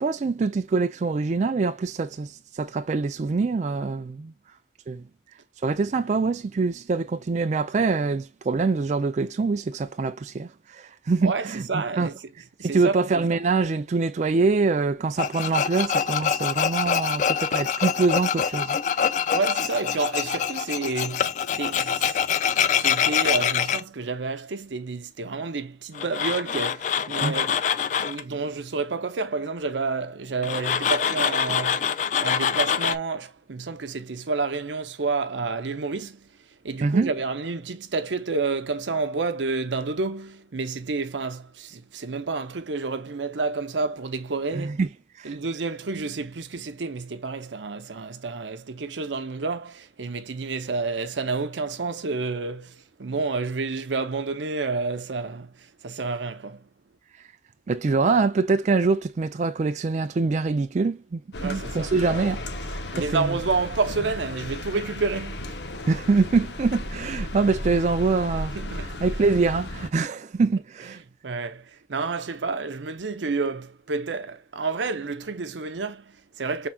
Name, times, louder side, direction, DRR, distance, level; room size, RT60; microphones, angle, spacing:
voice 1, 0.0-4.3 4.9-5.0 5.6-12.1 12.6-19.1 27.2-27.4 36.8-37.1 44.6-44.9 45.2-45.4 57.7-62.4 63.1-63.4 65.9-68.6 69.0-71.0, right 4 dB, 40° right, 0.3 m, -24 dB
voice 2, 11.2-12.1 12.6-13.0 19.3-22.2 22.6-27.6 28.0-31.9 32.2-36.3 36.6-44.8 45.2-56.7 61.4-61.9 62.9-65.6 68.5-69.0 71.2-76.7, right 4 dB, 90° right, 0.7 m, -29 dB
Tools, 15.2-23.8 25.9-28.2 30.4-33.0, left 7 dB, 40° left, 0.3 m, -25 dB
sound 1, 61.3-69.9, left 1 dB, 70° left, 0.8 m, -34 dB
5.6 x 3.6 x 2.2 m
head